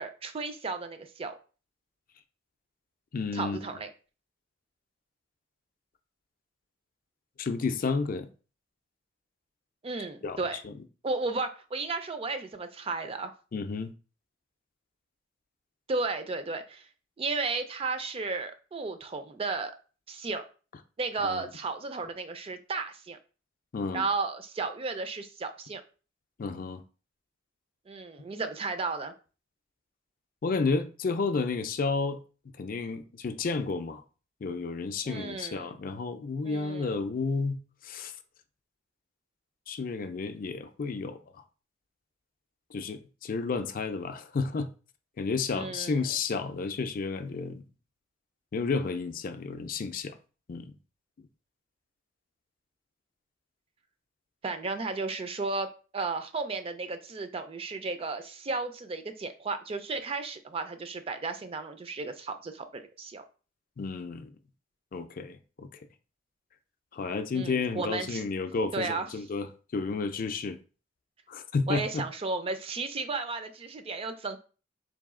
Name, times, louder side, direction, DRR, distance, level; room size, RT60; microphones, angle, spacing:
voice 1, 0.0-1.3 3.3-3.9 9.8-10.6 11.0-13.3 15.9-16.9 17.2-19.7 20.1-20.4 21.0-23.2 23.9-25.8 27.9-29.1 35.0-35.8 36.4-37.0 45.5-46.1 54.4-63.2 67.3-68.2 68.7-69.1 71.7-74.4, right 3 dB, 30° right, 0.4 m, -34 dB
voice 2, 3.1-3.6 7.4-8.3 10.2-10.4 10.6-10.7 13.5-13.9 21.2-21.5 23.7-24.1 26.4-26.8 30.4-32.2 32.6-34.0 34.4-38.1 39.7-41.4 42.7-44.7 45.2-47.6 48.5-50.2 50.5-50.7 51.2-51.3 63.8-64.3 64.9-65.8 66.9-70.6 71.3-72.1, left 4 dB, 50° left, 0.4 m, -31 dB
4.0 x 2.7 x 3.6 m
head